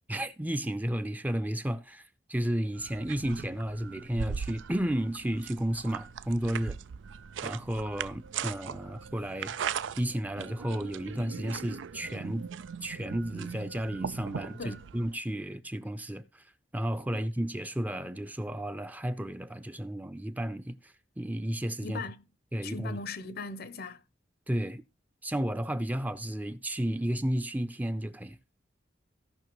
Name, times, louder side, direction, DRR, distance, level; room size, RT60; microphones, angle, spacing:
voice 1, 0.1-6.8 7.4-9.5 10.0-12.5 12.8-16.5 16.7-22.0 22.5-23.0 24.5-24.8 25.2-28.4, right 1 dB, 10° right, 0.5 m, -33 dB
sound 1, 2.7-15.2, right 7 dB, 85° right, 0.4 m, -39 dB
voice 2, 21.8-22.2 22.6-24.0, left 4 dB, 55° left, 0.8 m, -39 dB
16.5 x 5.8 x 3.0 m
head